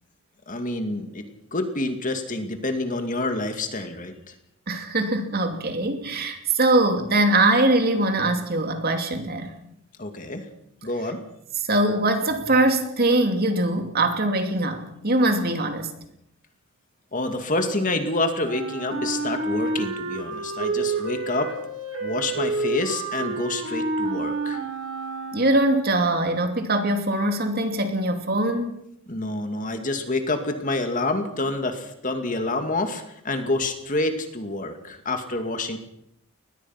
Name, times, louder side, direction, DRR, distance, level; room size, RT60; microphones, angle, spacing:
voice 1, 0.5-1.2 1.5-4.3 10.0-10.5 10.8-11.2 17.1-21.5 22.0-24.6 29.1-35.8, left 2 dB, 35° left, 6 dB, 2.4 m, -28 dB
voice 2, 4.7-9.5 11.7-15.9 25.3-28.8, right 2 dB, 45° right, 6 dB, 2.8 m, -22 dB
Wind instrument woodwind instrument, 18.4-25.8, right 3 dB, 60° right, 4.7 m, -29 dB
22.5 x 20.5 x 5.9 m, 0.77 s
head